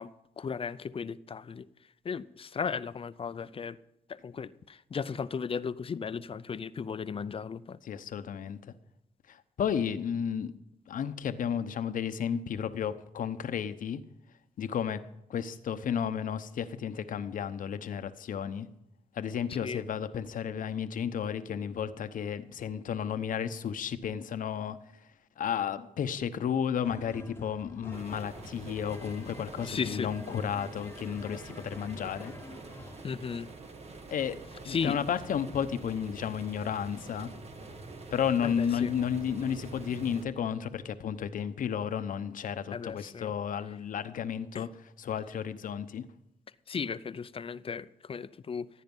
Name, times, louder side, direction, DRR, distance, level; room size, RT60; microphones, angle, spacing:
voice 1, 0.0-1.7 2.0-3.8 4.1-7.8 19.6-19.8 29.6-30.1 33.0-33.5 34.7-35.0 38.4-38.9 42.7-43.3 44.5-44.7 46.7-48.7, left 6 dB, 40° left, 0.6 m, -36 dB
voice 2, 7.8-8.6 9.3-10.5 10.9-14.0 14.6-15.0 15.3-18.7 19.1-24.8 25.4-32.3 34.1-34.4 34.6-37.3 38.1-44.7 45.0-46.1, left 8 dB, 70° left, 0.9 m, -32 dB
sound 1, 26.8-33.1, left 2 dB, 15° left, 1.1 m, -48 dB
sound 2, 27.9-40.2, right 3 dB, 45° right, 1.8 m, -46 dB
15.5 x 9.3 x 5.5 m
cardioid pair, 80°, 14 cm